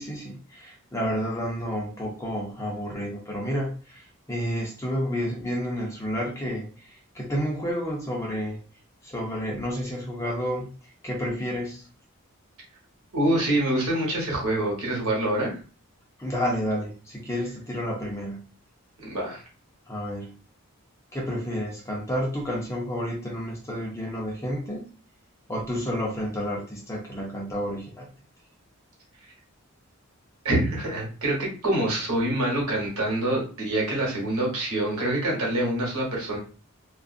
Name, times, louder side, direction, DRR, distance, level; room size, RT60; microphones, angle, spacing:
voice 1, 0.0-8.6 9.0-10.7 11.0-11.8 16.2-18.5 19.9-20.4 21.1-24.9 25.5-28.1, equal, 15° left, -2 dB, 0.6 m, -30 dB
voice 2, 13.1-15.5 19.0-19.4 30.4-36.4, right 1 dB, 85° right, -3 dB, 1.2 m, -25 dB
2.4 x 2.4 x 2.4 m, 0.36 s
head